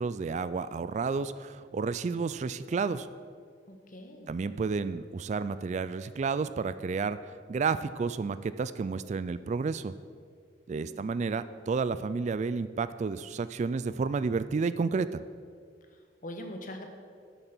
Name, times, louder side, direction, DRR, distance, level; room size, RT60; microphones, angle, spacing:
voice 1, 0.0-3.1 4.3-7.2 7.5-9.9 10.7-15.2, right 4 dB, 40° right, 14 dB, 0.3 m, -31 dB
voice 2, 3.7-4.3 10.7-11.1 15.9-16.9, left 1 dB, 50° left, 4 dB, 1.3 m, -43 dB
10.0 x 8.4 x 6.0 m, 2.1 s
head